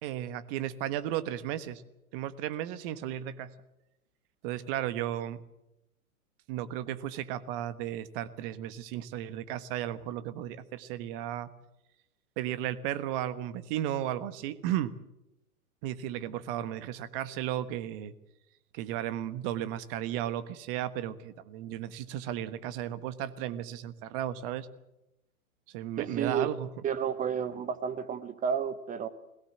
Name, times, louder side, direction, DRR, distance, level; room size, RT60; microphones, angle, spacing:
voice 1, 0.0-1.8 2.1-3.5 4.4-5.4 6.5-11.5 12.4-14.9 15.8-18.1 18.7-24.7 25.7-26.7, right 12 dB, 40° right, 13 dB, 1.4 m, -34 dB
voice 2, 26.0-26.5 26.8-29.1, right 7 dB, 15° right, 12 dB, 1.1 m, -31 dB
21.5 x 17.5 x 8.0 m, 0.90 s
hypercardioid pair, 120°, 45 cm